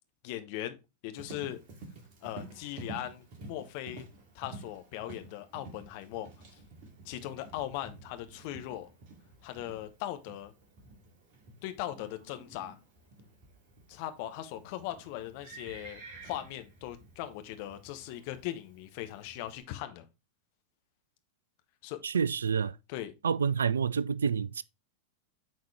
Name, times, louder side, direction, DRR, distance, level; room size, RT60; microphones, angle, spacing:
voice 1, 0.2-0.8 1.0-1.6 2.2-4.1 4.3-6.3 7.0-8.9 9.4-10.5 11.6-12.8 13.9-20.0 21.8-22.0 22.9-23.1, left 13 dB, 45° left, 0.9 m, -39 dB
Livestock farm animals working animals, 1.1-19.6, right 2 dB, 40° right, 2.4 m, -51 dB
voice 2, 22.0-22.8 23.2-24.6, right 6 dB, 70° right, 0.3 m, -28 dB
8.4 x 4.2 x 3.2 m
figure-of-eight pair, 90°, 0 cm